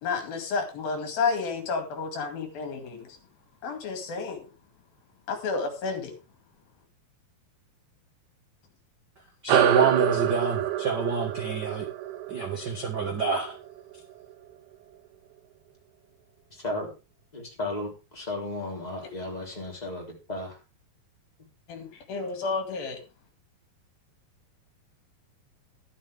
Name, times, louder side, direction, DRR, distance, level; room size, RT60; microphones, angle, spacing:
voice 1, 0.0-3.1 3.6-4.5 5.3-6.1 21.7-23.0, left 4 dB, 75° left, 4.2 m, -31 dB
voice 2, 9.4-11.9 12.3-13.6, right 5 dB, 45° right, 1.3 m, -27 dB
sound 1, 9.5-14.3, right 12 dB, 85° right, 2.8 m, -27 dB
voice 3, 16.5-16.9 17.3-20.6, left 2 dB, 10° left, 3.5 m, -34 dB
12.0 x 11.5 x 3.5 m
omnidirectional pair, 4.2 m